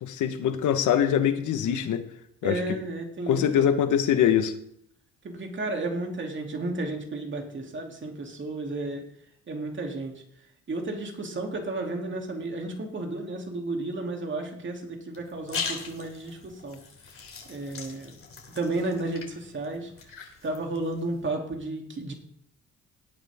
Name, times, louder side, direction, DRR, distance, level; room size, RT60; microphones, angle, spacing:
voice 1, 0.0-2.0 2.4-2.6 3.3-4.5, left 9 dB, 75° left, 1.4 m, -23 dB
voice 2, 2.4-3.8 5.2-9.1 9.5-10.1 10.7-16.8 17.5-18.1 18.5-19.9 20.4-22.1, right 2 dB, 40° right, 3.0 m, -32 dB
sound 1, 15.1-21.3, left 5 dB, 45° left, 3.2 m, -40 dB
18.0 x 9.2 x 3.7 m
cardioid pair, 90°, 30 cm